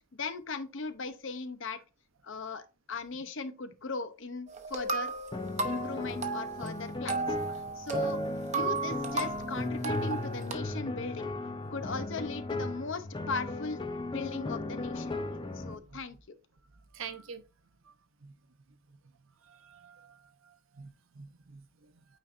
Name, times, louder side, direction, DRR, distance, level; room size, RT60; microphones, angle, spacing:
voice 1, 0.1-1.8 2.2-2.6 2.9-5.1 5.6-7.3 7.8-8.2 8.5-11.3 11.7-13.8 14.1-15.2 15.5-16.2, left 4 dB, 55° left, 0.7 m, -38 dB
sound 1, 4.5-10.5, right 3 dB, 30° right, 0.7 m, -35 dB
sound 2, 5.3-15.8, left 2 dB, 20° left, 0.5 m, -36 dB
voice 2, 16.9-17.4 18.2-18.3 19.5-20.1 20.8-21.6, right 7 dB, 60° right, 0.8 m, -45 dB
9.0 x 4.3 x 2.5 m
head